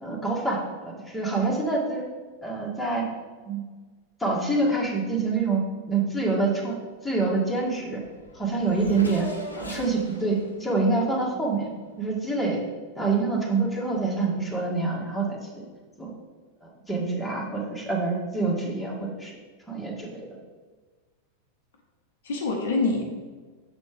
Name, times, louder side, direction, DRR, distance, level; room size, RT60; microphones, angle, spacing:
voice 1, 0.0-2.0 2.4-3.1 3.5-3.7 4.2-5.6 5.9-6.8 7.0-8.0 8.3-9.3 9.6-11.7 12.0-12.6 13.0-15.4 16.0-16.1 16.6-19.4 19.7-20.4, right 3 dB, ahead, -5 dB, 1.9 m, -26 dB
Race car auto racing / Accelerating revving vroom, 7.7-7.8 8.0-12.0, left 1 dB, 80° left, 1.0 m, -40 dB
voice 2, 18.4-18.8 22.2-23.1, left 3 dB, 60° left, 1 dB, 0.9 m, -27 dB
6.9 x 4.1 x 5.2 m, 1.4 s
figure-of-eight pair, 90°, 0 cm